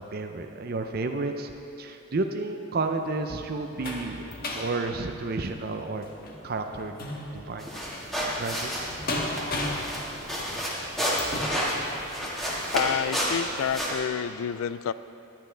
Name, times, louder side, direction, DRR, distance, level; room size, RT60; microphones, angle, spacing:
voice 1, 0.0-1.5 1.8-6.1 6.4-7.0 7.3-7.7 8.4-8.7, right 3 dB, 45° right, 5 dB, 0.5 m, -31 dB
sound 1, 2.8-12.7 13.2-13.4 13.7-13.8, left 1 dB, 45° left, 1.3 m, -37 dB
sound 2, 7.6-13.9, equal, ahead, 1.7 m, -31 dB
voice 2, 12.7-14.9, left 8 dB, 75° left, 16 dB, 0.3 m, -29 dB
14.5 x 10.5 x 3.4 m, 2.8 s
head